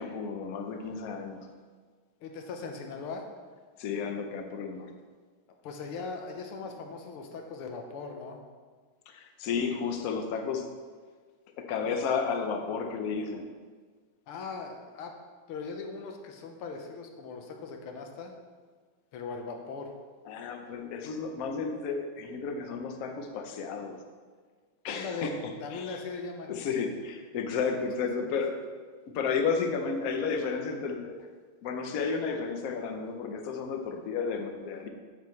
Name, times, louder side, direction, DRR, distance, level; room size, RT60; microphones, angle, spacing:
voice 1, 0.0-1.5 3.8-4.9 9.1-10.7 11.6-13.4 20.3-24.0 24.8-26.0 26.5-28.6 29.1-31.3 31.6-34.9, left 5 dB, 65° left, 5 dB, 0.9 m, -32 dB
voice 2, 2.2-3.3 5.6-8.4 14.3-15.1 15.5-18.3 19.1-19.9 24.9-25.3 25.6-26.5 28.2-28.4, left 4 dB, 85° left, 3 dB, 1.8 m, -39 dB
8.4 x 8.3 x 3.2 m, 1.5 s
omnidirectional pair, 2.4 m